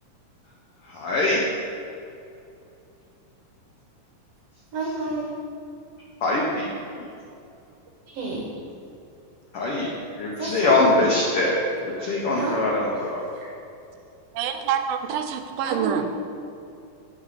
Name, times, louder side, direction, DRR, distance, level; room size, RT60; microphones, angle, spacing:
voice 1, 0.9-1.4 6.2-6.7 6.9-7.0 9.5-13.2, left 2 dB, 80° left, -3 dB, 1.2 m, -23 dB
voice 2, 4.7-5.3 8.1-8.5 10.4-11.0 12.3-12.6 13.3-13.5 15.6-16.1, right 3 dB, 65° right, -2 dB, 1.6 m, -29 dB
voice 3, 14.3-16.1, right 8 dB, 90° right, 8 dB, 2.3 m, -27 dB
9.2 x 5.5 x 4.1 m, 2.6 s
omnidirectional pair, 3.8 m